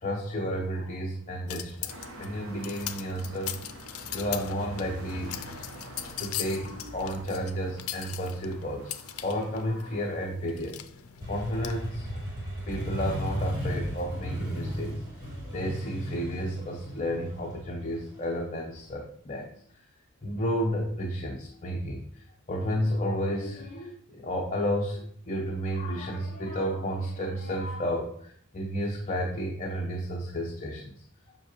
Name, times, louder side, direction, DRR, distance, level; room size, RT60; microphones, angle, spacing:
voice 1, 0.0-1.9 2.2-3.5 4.1-5.3 6.2-8.9 9.2-10.8 11.3-12.1 12.7-15.0 15.5-19.5 20.2-22.0 22.5-30.9, equal, 35° left, 0 dB, 0.8 m, -32 dB
sound 1, 1.5-11.9, left 11 dB, 80° left, 0.5 m, -40 dB
sound 2, 1.9-10.3, right 1 dB, 70° right, 1.1 m, -46 dB
Motorcycle, 11.2-18.8, equal, 20° right, 2.8 m, -35 dB
7.4 x 5.7 x 3.0 m, 0.63 s
head